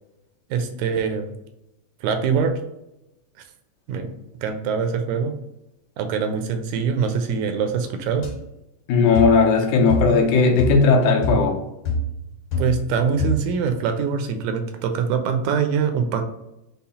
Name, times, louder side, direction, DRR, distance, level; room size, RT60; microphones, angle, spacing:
voice 1, 0.5-1.3 2.0-2.5 3.9-4.1 4.4-5.3 6.0-8.3 12.6-16.2, right 6 dB, 80° right, 6 dB, 1.9 m, -23 dB
sound 1, 8.2-8.4 9.1-9.4 9.9-10.2 10.6-10.9 11.2-11.5 11.9-12.9 13.2-13.6, left 1 dB, 60° left, 2.2 m, -26 dB
voice 2, 8.9-11.6, left 4 dB, 80° left, 2 dB, 2.0 m, -17 dB
5.4 x 2.0 x 4.1 m, 0.91 s
omnidirectional pair, 3.4 m